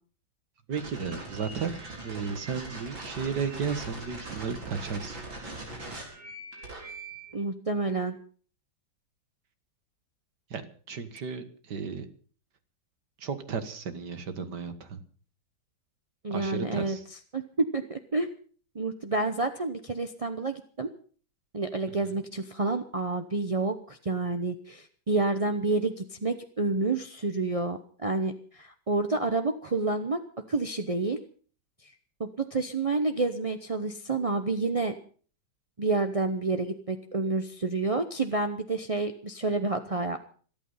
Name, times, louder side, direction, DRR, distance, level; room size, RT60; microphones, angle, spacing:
voice 1, 0.7-5.1 10.5-10.6 10.9-12.1 13.2-15.0 16.3-17.0 22.0-22.1, right 6 dB, 60° right, 10 dB, 2.2 m, -34 dB
sound 1, 0.7-7.3, right 2 dB, 75° right, 5.1 m, -41 dB
voice 2, 7.3-8.2 16.2-17.0 17.3-17.4 17.7-18.3 18.7-20.9 21.5-30.2 30.5-31.2 32.2-35.0 35.8-40.3, right 3 dB, 40° right, 6 dB, 0.5 m, -29 dB
26.5 x 9.2 x 5.6 m, 0.43 s
omnidirectional pair, 2.1 m